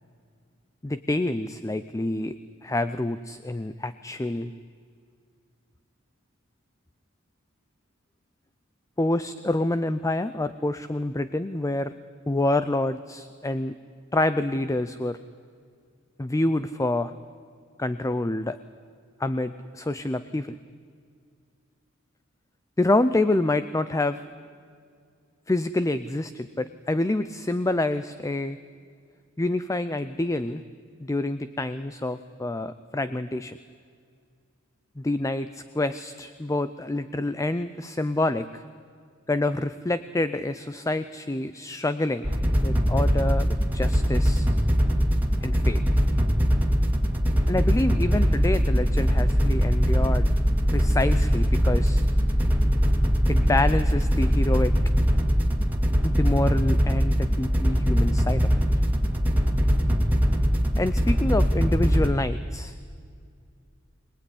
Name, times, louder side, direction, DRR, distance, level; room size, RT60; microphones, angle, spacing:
voice 1, 0.8-2.4 2.6-4.5 9.0-11.9 12.3-13.8 14.1-15.2 16.2-17.1 17.8-18.6 19.2-20.6 22.8-24.2 25.5-28.6 29.4-30.6 31.0-33.6 35.0-38.6 39.3-42.3 42.6-44.5 45.4-45.8 47.5-50.3 50.7-52.0 53.3-54.7 56.0-58.5 60.8-62.7, left 2 dB, 15° left, 13 dB, 0.5 m, -27 dB
sound 1, 42.2-62.1, equal, 10° right, 2.3 m, -22 dB
24.0 x 19.0 x 9.8 m, 2.2 s
head